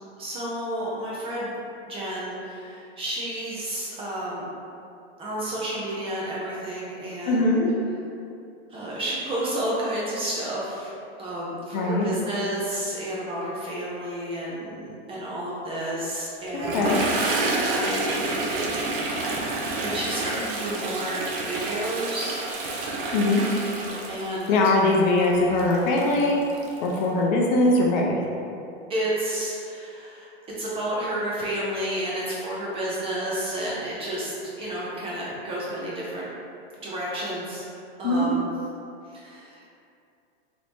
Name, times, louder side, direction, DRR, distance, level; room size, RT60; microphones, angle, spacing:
voice 1, 0.2-4.4 5.2-7.5 8.7-10.9 11.2-16.8 17.1-18.3 19.8-22.4 24.1-24.5 28.9-30.3 30.6-36.3 36.8-37.6 38.0-38.5 39.1-39.6, right 1 dB, 20° right, -6 dB, 0.5 m, -31 dB
voice 2, 7.3-7.7 11.7-12.1 16.5-17.0 23.1-23.4 24.5-26.4 26.8-28.2 38.0-38.3, left 2 dB, 45° left, -1 dB, 0.5 m, -21 dB
Toilet flush, 16.5-27.0, right 2 dB, 55° right, 0.6 m, -29 dB
3.0 x 2.5 x 3.4 m, 2.6 s
supercardioid pair, 140°, 32 cm